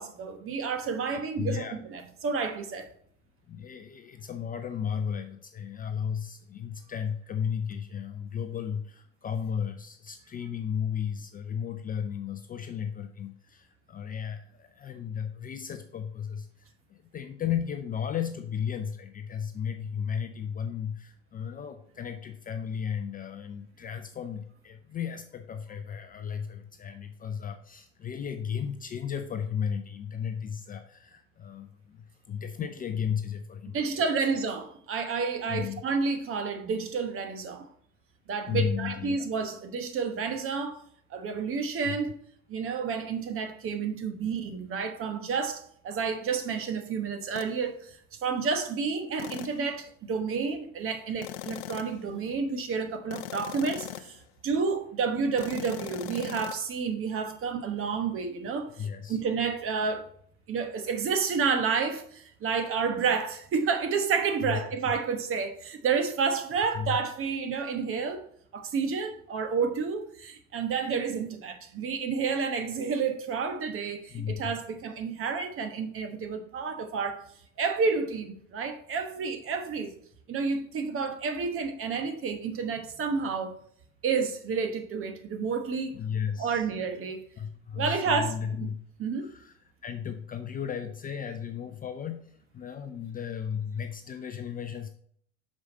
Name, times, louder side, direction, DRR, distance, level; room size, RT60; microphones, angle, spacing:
voice 1, 0.0-2.9 33.7-37.7 38.3-40.8 41.1-42.2 42.5-54.2 54.4-60.1 60.5-68.2 68.5-77.2 77.6-79.9 80.3-83.5 84.0-85.9 86.4-87.2 87.7-88.4 88.6-88.7 89.0-89.3, right 5 dB, 35° right, 1.1 m, -30 dB
voice 2, 1.1-1.8 3.5-16.5 16.9-34.1 35.5-35.8 38.5-39.3 41.8-42.0 44.2-44.3 58.7-59.2 64.4-64.6 66.7-67.0 74.1-74.5 85.9-86.7 87.4-88.8 89.2-89.5 89.8-94.9, left 7 dB, 25° left, 0.5 m, -34 dB
sound 1, 47.4-47.6 49.2-49.7 51.2-52.1 53.1-54.2 55.4-56.6, left 15 dB, 70° left, 0.6 m, -39 dB
6.3 x 4.8 x 4.1 m
hypercardioid pair, 100°, 38 cm